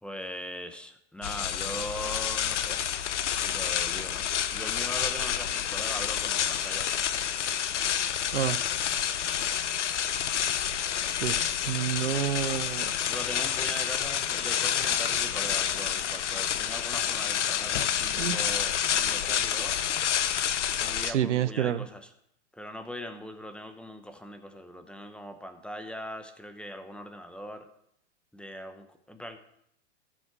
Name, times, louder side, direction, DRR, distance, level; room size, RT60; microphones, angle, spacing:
voice 1, 0.0-2.8 3.4-6.9 13.0-19.8 20.8-22.1 22.5-27.7 28.3-29.4, equal, 5° left, 8 dB, 0.9 m, -40 dB
sound 1, 1.2-21.1, left 9 dB, 85° left, 0.9 m, -29 dB
voice 2, 11.2-13.0 18.2-18.4 21.0-21.8, right 10 dB, 90° right, 15 dB, 0.8 m, -29 dB
14.5 x 7.7 x 4.8 m, 0.75 s
hypercardioid pair, 125°, 35 cm